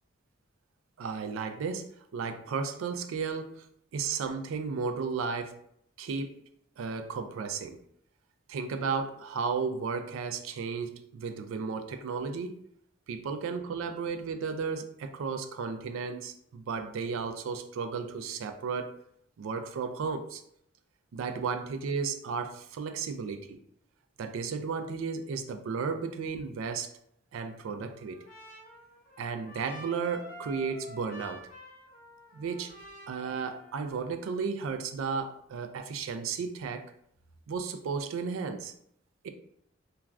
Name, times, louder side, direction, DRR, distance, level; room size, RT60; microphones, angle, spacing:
voice 1, 1.0-3.7 3.9-5.6 6.0-6.4 6.8-7.8 8.5-12.6 13.1-18.9 19.4-20.4 21.1-23.6 24.2-26.9 27.3-28.2 29.2-31.5 32.3-32.7 33.1-36.9 37.5-38.7 39.2-39.3, right 5 dB, 80° right, 7 dB, 0.3 m, -34 dB
Trumpet, 27.4-34.2, left 1 dB, 40° left, 0.7 m, -49 dB
2.4 x 2.2 x 3.1 m, 0.70 s
head